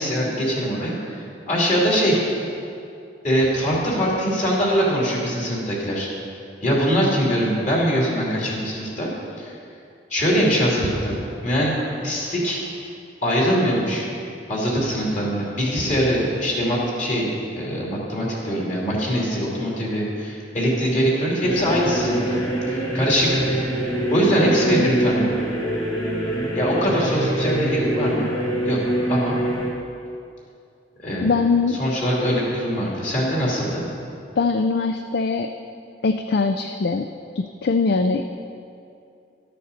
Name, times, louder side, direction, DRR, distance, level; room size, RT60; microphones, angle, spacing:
voice 1, 0.0-2.2 3.2-6.1 6.6-9.1 9.4-9.5 10.1-12.6 13.2-14.1 14.5-22.4 22.7-23.4 24.1-25.3 26.5-28.3 28.6-29.4 31.0-31.3 31.7-33.8, equal, 45° left, -4 dB, 2.8 m, -22 dB
sound 1, 21.4-29.7, right 1 dB, 20° left, 2.0 m, -24 dB
voice 2, 31.2-31.8 34.4-35.5 36.0-37.1 37.4-38.3, left 4 dB, 65° left, 7 dB, 0.4 m, -21 dB
12.5 x 6.9 x 6.5 m, 2.5 s
head